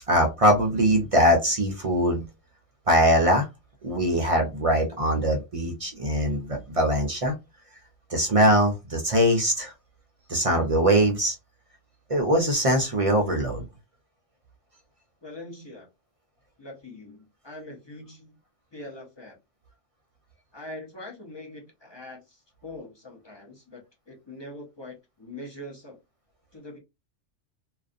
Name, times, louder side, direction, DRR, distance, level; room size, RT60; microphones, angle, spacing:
voice 1, 0.1-2.2 2.9-3.5 3.8-7.3 8.1-9.7 10.3-11.4 12.1-13.6, equal, 55° right, 0.4 m, -22 dB
voice 2, 15.2-15.9 16.6-18.4 18.7-19.4 20.5-26.0 26.5-26.8, left 1 dB, 30° left, 0.5 m, -43 dB
2.4 x 2.3 x 2.5 m
omnidirectional pair, 1.3 m